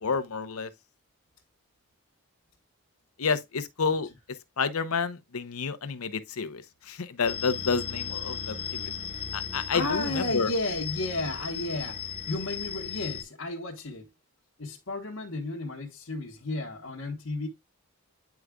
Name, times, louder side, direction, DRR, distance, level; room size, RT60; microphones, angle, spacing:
voice 1, 0.0-0.7 3.2-4.1 4.6-8.9 9.3-10.5, left 5 dB, 85° left, 0.8 m, -29 dB
sound 1, 7.2-13.2, left 7 dB, 30° left, 1.3 m, -36 dB
voice 2, 9.7-14.1 14.6-17.5, left 2 dB, 65° left, 1.2 m, -33 dB
9.4 x 4.8 x 2.3 m
head